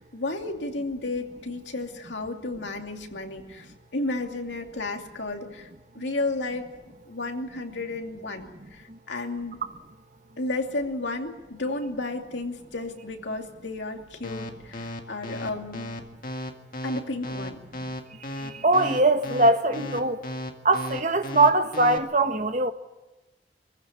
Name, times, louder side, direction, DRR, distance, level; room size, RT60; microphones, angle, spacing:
voice 1, 0.0-5.7 5.9-6.7 7.1-9.6 10.4-15.8 16.8-17.6, left 2 dB, 85° left, 2.6 m, -32 dB
sound 1, 14.2-22.0, left 1 dB, 50° left, 1.9 m, -34 dB
voice 2, 18.4-20.2 20.6-22.7, right 2 dB, 40° right, 1.2 m, -22 dB
24.0 x 15.5 x 9.8 m
head